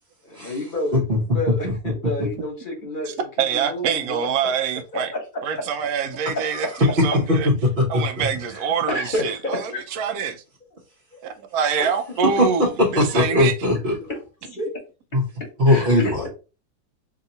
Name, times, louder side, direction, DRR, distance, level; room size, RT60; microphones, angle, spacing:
voice 1, 0.2-3.2 3.6-4.3 4.9-5.2 5.5-5.6 6.3-6.4 8.5-9.8 11.1-11.2 13.3-13.4 14.1-14.2 14.4-14.7 15.7-16.3, left 1 dB, 35° left, 1.2 m, -29 dB
voice 2, 3.1-5.1 5.4-7.5 7.9-10.4 11.2-13.5, right 7 dB, 75° right, 1.1 m, -25 dB
voice 3, 6.5-7.1 7.6-8.3 12.4-13.9 15.1-15.2 15.6-16.3, left 1 dB, 40° right, 1.0 m, -20 dB
2.9 x 2.8 x 3.8 m
omnidirectional pair, 1.6 m